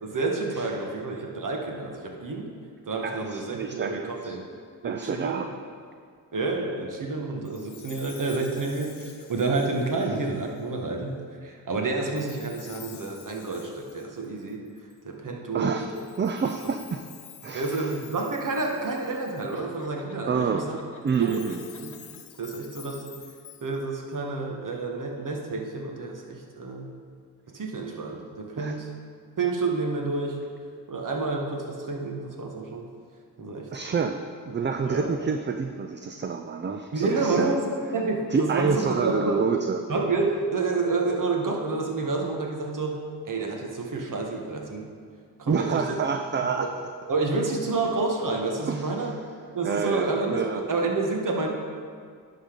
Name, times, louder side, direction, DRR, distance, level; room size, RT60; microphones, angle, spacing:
voice 1, 0.0-2.5 2.9-4.4 4.8-5.4 6.3-11.1 11.4-14.6 15.0-16.0 17.5-20.8 21.2-21.9 22.4-23.0 23.6-26.9 27.5-28.9 29.4-30.4 30.9-32.9 33.4-33.7 34.8-35.1 36.9-39.5 39.9-44.9 45.4-45.8 46.4-46.7 47.1-49.1 49.5-51.5, right 3 dB, 50° right, 1 dB, 1.5 m, -29 dB
voice 2, 3.0-4.4 4.8-5.5 15.5-15.9 16.2-17.0 17.4-17.9 20.3-20.7 21.0-21.6 28.6-28.7 33.7-37.5 38.3-39.8 45.5-46.7 48.7-49.1 49.6-50.6, right 5 dB, 25° right, 6 dB, 0.4 m, -28 dB
Chime, 7.4-10.8 12.1-15.0 15.9-19.8 21.0-24.2, left 9 dB, 70° left, 0.8 m, -49 dB
Laughter, 19.5-21.0 21.5-22.4, left 4 dB, 45° left, 1.1 m, -47 dB
11.0 x 4.0 x 5.1 m, 2.1 s
supercardioid pair, 50°, 41 cm